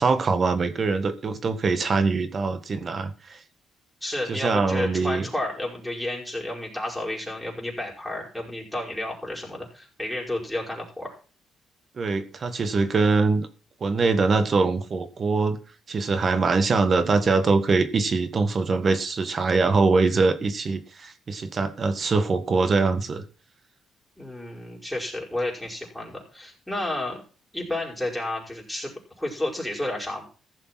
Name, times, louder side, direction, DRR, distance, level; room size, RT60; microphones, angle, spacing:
voice 1, 0.0-3.4 4.3-5.3 12.0-13.5 13.8-15.6 15.9-23.2, right 4 dB, 45° right, 1.6 m, -23 dB
voice 2, 4.0-11.2 24.2-27.2 27.5-30.3, left 1 dB, 5° left, 5.3 m, -31 dB
15.5 x 6.8 x 6.1 m
cardioid pair, 90°, 0 cm